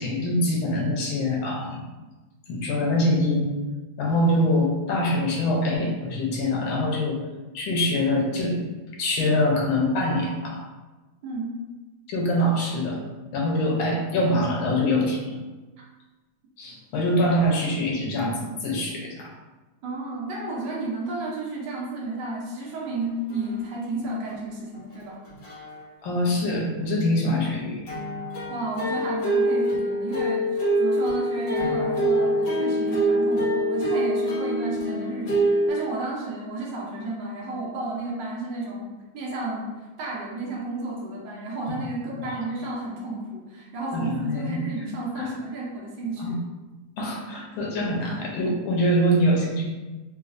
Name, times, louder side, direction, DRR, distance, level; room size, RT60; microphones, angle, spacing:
voice 1, 0.0-1.8 2.5-3.5 4.0-7.2 7.5-8.6 9.0-10.6 12.1-13.0 13.3-15.4 16.6-19.3 26.0-27.8 41.7-41.8 42.2-42.3 43.9-45.3 46.2-46.4 47.0-49.7, left 1 dB, 85° left, -1 dB, 1.5 m, -24 dB
voice 2, 11.2-11.5 19.8-25.2 28.5-46.4, right 2 dB, 70° right, -3 dB, 1.4 m, -32 dB
sound 1, 23.0-23.1 23.3-23.6 24.3-24.4 24.7-24.8 25.3-25.8 27.8-35.7, right 1 dB, 65° left, 1.7 m, -25 dB
4.0 x 2.5 x 2.5 m, 1.2 s
omnidirectional pair, 2.1 m